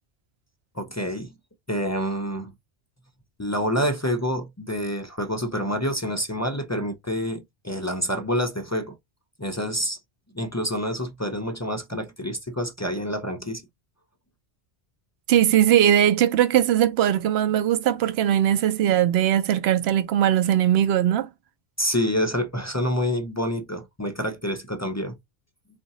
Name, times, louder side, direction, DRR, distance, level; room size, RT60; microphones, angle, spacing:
voice 1, 0.8-1.3 1.7-2.5 3.4-9.0 9.4-10.0 10.3-13.6 21.8-25.2, equal, 25° left, 0.4 m, -27 dB
voice 2, 15.3-21.3, right 11 dB, 70° right, 0.8 m, -20 dB
3.7 x 2.5 x 4.0 m
omnidirectional pair, 1.1 m